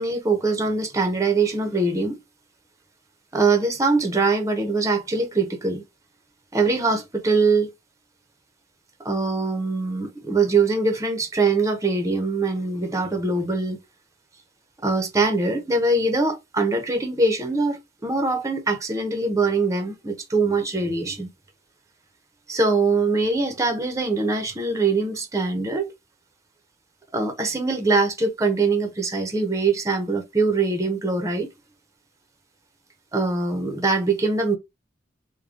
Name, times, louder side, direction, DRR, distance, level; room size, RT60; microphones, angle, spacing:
voice 1, 0.0-2.2 3.3-5.8 6.5-7.7 9.0-13.8 14.8-21.3 22.5-25.9 27.1-31.5 33.1-34.6, right 3 dB, 20° right, 0.7 m, -23 dB
3.5 x 2.1 x 3.7 m
head